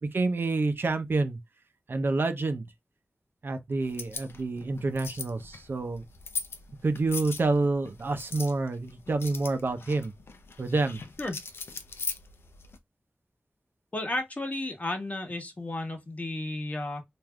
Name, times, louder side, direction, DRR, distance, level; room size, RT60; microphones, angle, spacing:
voice 1, 0.0-1.4 1.9-2.6 3.4-6.0 6.8-10.1 10.6-11.0, right 3 dB, 65° right, 0.6 m, -28 dB
sound 1, 3.8-12.8, left 4 dB, 90° left, 0.5 m, -41 dB
voice 2, 13.9-17.0, left 2 dB, 40° left, 1.2 m, -33 dB
3.4 x 2.6 x 2.2 m
cardioid pair, 45°, 4 cm